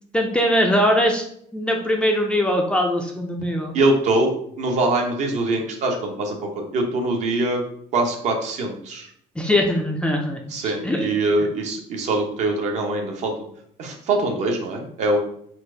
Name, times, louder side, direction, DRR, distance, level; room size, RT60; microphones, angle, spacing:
voice 1, 0.1-1.3 1.5-3.7 9.4-11.1 11.4-11.5, equal, 5° left, 1 dB, 0.5 m, -21 dB
voice 2, 3.7-7.6 7.9-9.1 10.5-13.3 13.8-15.2, right 2 dB, 50° right, 2 dB, 1.0 m, -23 dB
4.4 x 2.5 x 4.9 m, 0.67 s
cardioid pair, 155°, 15 cm